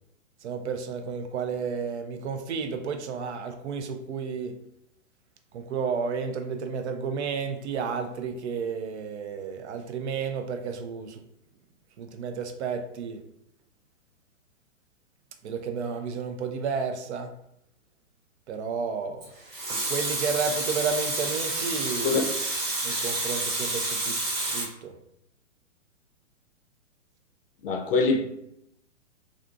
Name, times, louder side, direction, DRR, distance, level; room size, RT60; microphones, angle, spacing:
voice 1, 0.4-4.5 5.5-11.2 12.0-13.2 15.4-17.3 18.5-19.2 19.7-22.2 22.8-24.9, right 5 dB, 60° right, 7 dB, 0.5 m, -32 dB
Water tap faucet / Sink (filling or washing) / Liquid, 19.2-24.7, right 2 dB, 80° right, 1.4 m, -29 dB
voice 2, 27.6-28.2, left 4 dB, 50° left, 4 dB, 0.5 m, -23 dB
2.5 x 2.4 x 2.5 m, 0.79 s
hypercardioid pair, 145°, 38 cm